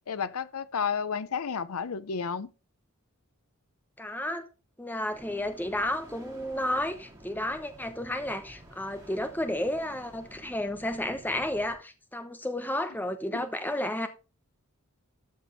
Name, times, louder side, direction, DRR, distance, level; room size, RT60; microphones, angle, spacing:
voice 1, 0.0-2.5 13.3-13.5, left 6 dB, 80° left, 0.6 m, -32 dB
voice 2, 4.0-4.5 4.8-14.1, left 1 dB, 10° left, 1.0 m, -32 dB
sound 1, 5.1-11.7, right 1 dB, 15° right, 3.3 m, -51 dB
13.0 x 5.2 x 4.0 m
head